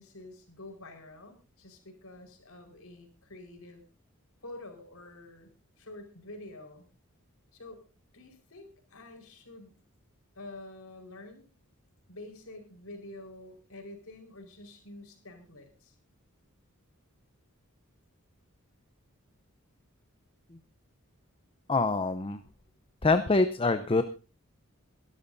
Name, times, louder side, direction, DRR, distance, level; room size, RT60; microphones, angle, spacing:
voice 1, 0.0-3.8 4.4-5.5 5.8-6.9 7.5-7.8 8.1-9.8 10.3-11.5 12.1-15.9, left 2 dB, 75° left, 4 dB, 4.8 m, -48 dB
voice 2, 21.7-22.4 23.0-24.0, left 3 dB, 25° left, 9 dB, 0.7 m, -25 dB
23.5 x 12.5 x 2.7 m, 0.33 s
head